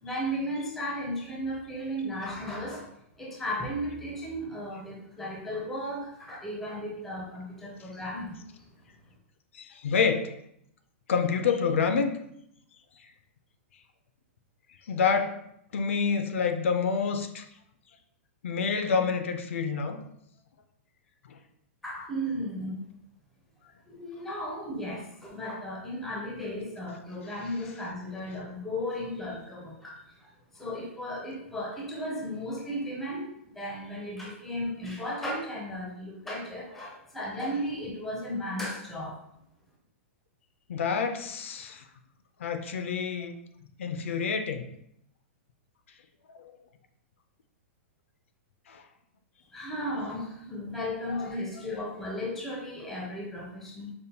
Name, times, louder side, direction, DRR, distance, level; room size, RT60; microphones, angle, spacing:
voice 1, 0.0-2.9 3.2-8.4 21.8-22.8 23.9-39.2 49.5-53.9, equal, 5° left, -3 dB, 0.4 m, -35 dB
voice 2, 9.5-10.3 11.1-12.1 14.9-15.4 15.7-17.5 18.4-20.0 21.3-21.4 40.7-41.8 42.4-43.3 43.8-44.7 46.3-46.5 48.7-48.8 51.1-51.3, left 5 dB, 70° left, 8 dB, 0.4 m, -28 dB
5.2 x 2.1 x 2.8 m, 0.74 s
hypercardioid pair, 180°, 7 cm